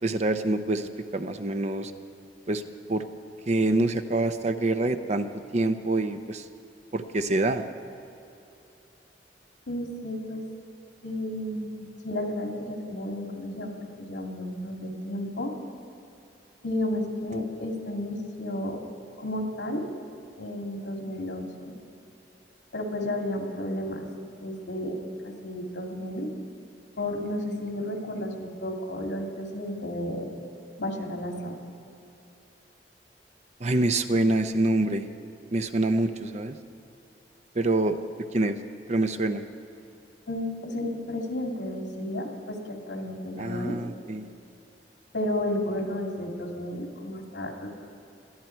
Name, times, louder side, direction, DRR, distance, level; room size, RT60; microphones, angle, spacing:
voice 1, 0.0-1.9 2.5-2.6 2.9-3.0 3.5-5.3 5.5-6.5 6.9-7.6 33.6-35.1 35.5-36.6 37.5-38.0 38.3-38.6 38.9-39.4 43.4-44.3, right 2 dB, 40° right, 9 dB, 0.7 m, -26 dB
voice 2, 9.7-10.4 11.0-15.5 16.6-18.8 19.2-19.8 20.4-21.7 22.7-24.1 24.4-25.0 25.2-26.3 27.0-30.3 30.8-31.5 40.3-43.8 45.1-47.8, left 1 dB, 85° left, 2 dB, 2.3 m, -32 dB
21.5 x 13.5 x 4.5 m, 2.8 s
head